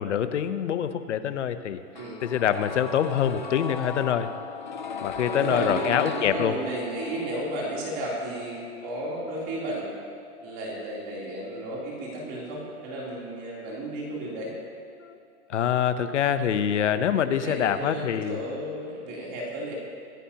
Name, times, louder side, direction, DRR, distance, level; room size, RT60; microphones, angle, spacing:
voice 1, 0.0-1.8 2.2-4.3 5.0-6.5 15.0-15.2 15.5-18.4, left 9 dB, 50° left, 11 dB, 0.9 m, -25 dB
sound 1, 1.9-13.8 14.1-14.2, left 5 dB, 30° left, 0.4 m, -38 dB
voice 2, 5.2-9.9 10.4-14.5 17.1-19.7, right 1 dB, 25° right, -4 dB, 3.3 m, -33 dB
25.5 x 14.0 x 2.9 m, 2.5 s
hypercardioid pair, 160°, 48 cm